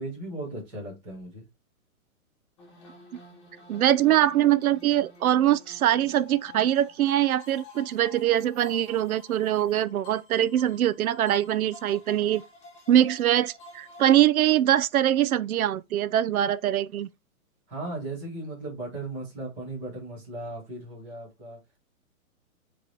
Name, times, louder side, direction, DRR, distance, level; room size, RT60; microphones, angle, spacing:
voice 1, 0.0-1.4 17.7-21.6, right 2 dB, 5° right, 0.6 m, -36 dB
sound 1, 2.6-14.2, left 3 dB, 20° left, 1.0 m, -50 dB
voice 2, 3.7-12.4 12.9-17.1, right 12 dB, 80° right, 0.6 m, -23 dB
4.6 x 3.1 x 3.8 m
hypercardioid pair, 175°, 43 cm